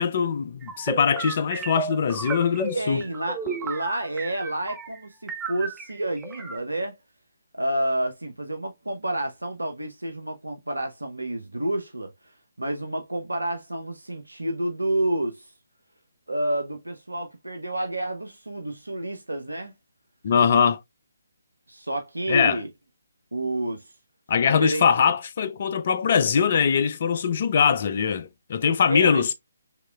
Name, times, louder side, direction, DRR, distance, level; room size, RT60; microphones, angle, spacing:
voice 1, 0.0-3.0 20.2-20.8 22.3-22.6 24.3-29.3, left 6 dB, 40° left, 0.6 m, -22 dB
sound 1, 0.6-5.0 5.3-6.6, right 5 dB, 10° right, 0.9 m, -34 dB
voice 2, 2.7-7.0 7.5-12.1 12.6-15.5 16.3-19.7 21.7-22.7 23.3-23.9 24.4-24.8 28.9-29.3, right 1 dB, 80° right, 0.8 m, -29 dB
6.0 x 3.1 x 2.3 m
figure-of-eight pair, 140°, 0 cm